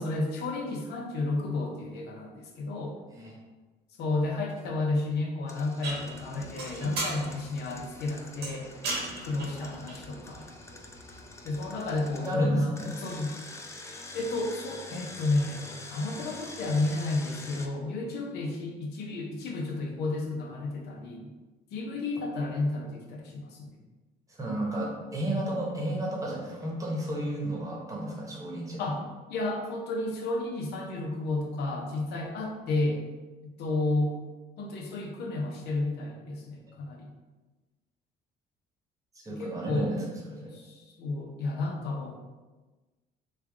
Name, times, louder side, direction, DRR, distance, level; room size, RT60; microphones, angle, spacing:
voice 1, 0.0-2.9 4.0-8.7 9.2-10.4 11.4-13.3 14.1-21.3 21.7-23.7 28.8-29.0 29.3-33.0 33.6-34.2 34.6-37.1 39.3-39.9 40.5-42.2, left 2 dB, 75° left, 1 dB, 0.7 m, -31 dB
Engine, 5.5-12.3 12.8-17.7, left 2 dB, 15° left, 0.4 m, -46 dB
sound 1, 5.8-12.1, right 2 dB, 80° right, 1.0 m, -39 dB
voice 2, 12.2-12.9 24.4-28.9 39.2-40.6, right 1 dB, 20° right, -3 dB, 1.0 m, -32 dB
3.3 x 2.4 x 3.5 m, 1.2 s
cardioid pair, 110°, 17 cm